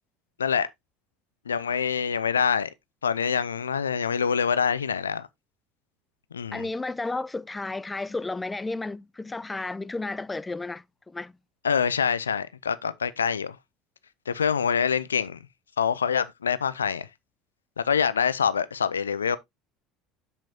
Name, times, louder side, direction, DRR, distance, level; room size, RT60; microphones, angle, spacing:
voice 1, 1.5-2.7 3.0-5.3 6.3-6.7 11.6-13.6 14.3-15.4 15.8-17.1 17.8-19.4, left 7 dB, 85° left, 0.4 m, -25 dB
voice 2, 6.5-11.3, left 3 dB, 15° left, 0.4 m, -32 dB
7.4 x 7.2 x 2.8 m
figure-of-eight pair, 65°, 0 cm